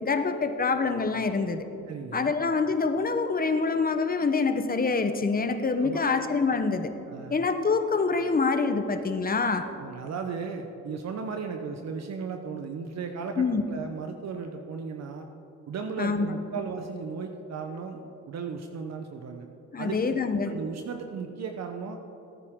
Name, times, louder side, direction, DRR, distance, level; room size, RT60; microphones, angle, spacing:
voice 1, 0.0-1.7 2.1-6.9 7.3-9.7 13.4-13.7 16.0-16.3 19.7-20.5, left 4 dB, 30° left, 8 dB, 1.0 m, -26 dB
voice 2, 1.9-2.3 5.8-6.1 7.1-7.5 9.6-15.3 15.7-19.5 19.8-20.2 20.5-22.0, right 5 dB, 60° right, 5 dB, 0.9 m, -36 dB
18.0 x 9.7 x 3.7 m, 2.9 s
cardioid pair, 90°, 30 cm